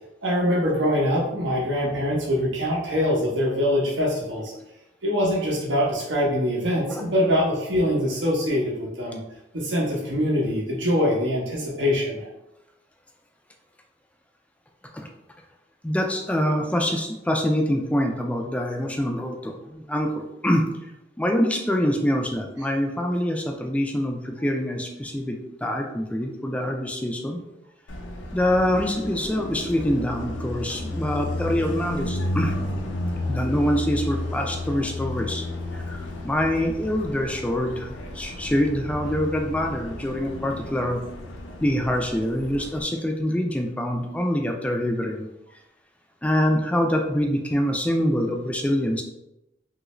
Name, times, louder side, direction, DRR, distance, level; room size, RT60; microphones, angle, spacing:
voice 1, 0.2-4.5 5.0-9.2 9.5-12.3, equal, 70° right, -4 dB, 0.8 m, -23 dB
voice 2, 15.8-20.6 21.2-27.4 28.3-32.5 33.3-35.5 35.7-36.0 36.2-37.9 38.1-41.0 41.6-45.3 46.2-49.0, equal, 5° left, 2 dB, 0.3 m, -25 dB
Car passing by, 27.9-42.8, left 1 dB, 75° left, 0.5 m, -32 dB
3.1 x 2.5 x 3.0 m, 0.90 s
head